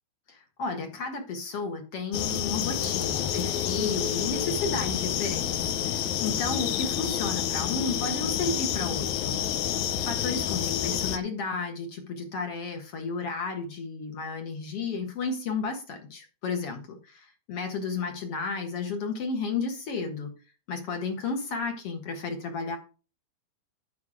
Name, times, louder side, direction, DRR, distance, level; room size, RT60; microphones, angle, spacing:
voice 1, 0.3-9.4 10.0-20.3 20.7-22.8, left 4 dB, 55° left, 4 dB, 1.8 m, -33 dB
sound 1, 2.1-11.2, left 10 dB, 75° left, 1.7 m, -29 dB
12.0 x 5.7 x 4.9 m, 0.34 s
omnidirectional pair, 4.4 m